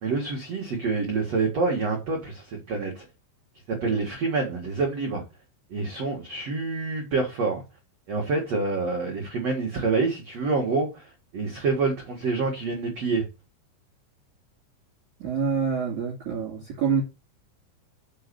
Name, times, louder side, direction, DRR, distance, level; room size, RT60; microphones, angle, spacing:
voice 1, 0.0-3.0 3.7-5.2 5.7-7.6 8.1-11.1 11.3-13.2, right 4 dB, 80° right, 1.4 m, -27 dB
voice 2, 15.2-17.0, right 6 dB, 45° right, 3.4 m, -26 dB
6.7 x 5.6 x 6.8 m
omnidirectional pair, 5.9 m